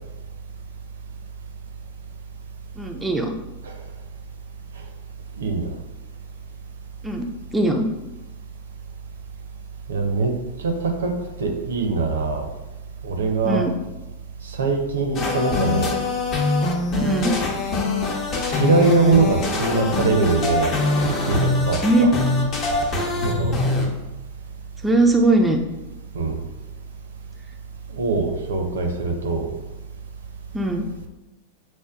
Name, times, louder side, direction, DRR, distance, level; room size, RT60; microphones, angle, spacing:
voice 1, 2.8-3.4 7.0-7.9 13.4-13.7 17.0-17.3 21.8-22.1 24.8-25.6 30.5-30.9, right 2 dB, 5° right, 2 dB, 0.4 m, -20 dB
voice 2, 5.4-5.7 9.9-10.3 10.6-11.1 11.4-12.5 13.0-13.6 14.4-16.0 18.5-20.7 21.2-22.1 23.2-23.6 26.1-26.4 28.0-29.5, right 3 dB, 65° right, 3 dB, 0.5 m, -22 dB
sound 1, 15.2-23.9, left 3 dB, 30° left, 0.7 m, -23 dB
5.9 x 2.2 x 2.4 m, 1.1 s
figure-of-eight pair, 90°, 0 cm